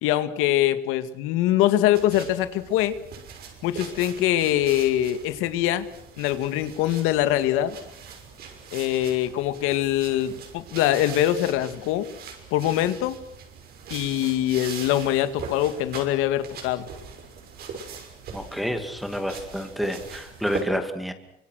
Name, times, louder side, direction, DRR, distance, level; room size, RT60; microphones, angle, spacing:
voice 1, 0.0-3.0 3.6-5.9 6.2-7.8 8.7-12.1 12.5-13.2 13.9-16.9, left 13 dB, 90° left, 11 dB, 2.1 m, -23 dB
sound 1, 1.9-20.6, right 6 dB, 50° right, 6.2 m, -41 dB
voice 2, 18.3-21.1, equal, ahead, 6 dB, 2.2 m, -29 dB
29.0 x 25.0 x 6.4 m, 0.71 s
cardioid pair, 175°, 21 cm